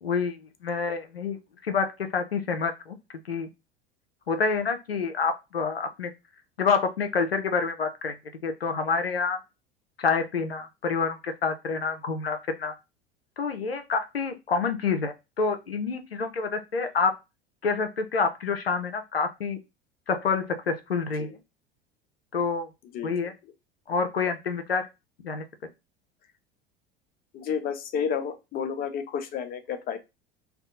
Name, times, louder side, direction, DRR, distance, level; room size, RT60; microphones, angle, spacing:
voice 1, 0.0-0.4 0.6-1.4 1.6-3.0 3.3-3.5 4.3-6.1 6.6-8.1 8.4-9.4 10.0-12.7 13.4-17.1 17.6-19.6 20.1-21.3 22.3-22.7 23.0-23.3 23.9-24.9 25.2-25.4, left 5 dB, 90° left, 7 dB, 0.4 m, -27 dB
voice 2, 22.9-23.3 27.3-30.0, left 7 dB, 30° left, 8 dB, 0.6 m, -31 dB
2.6 x 2.3 x 3.6 m, 0.24 s
figure-of-eight pair, 75°, 29 cm